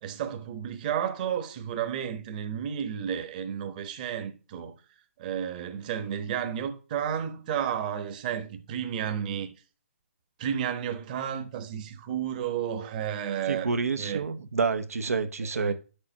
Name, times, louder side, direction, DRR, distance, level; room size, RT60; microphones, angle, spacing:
voice 1, 0.0-4.7 5.2-9.5 10.4-13.7 14.0-14.2 15.5-15.7, right 9 dB, 35° right, 1.1 m, -32 dB
voice 2, 13.4-15.7, right 4 dB, 85° right, 1.0 m, -28 dB
9.7 x 6.8 x 2.9 m
hypercardioid pair, 155°, 8 cm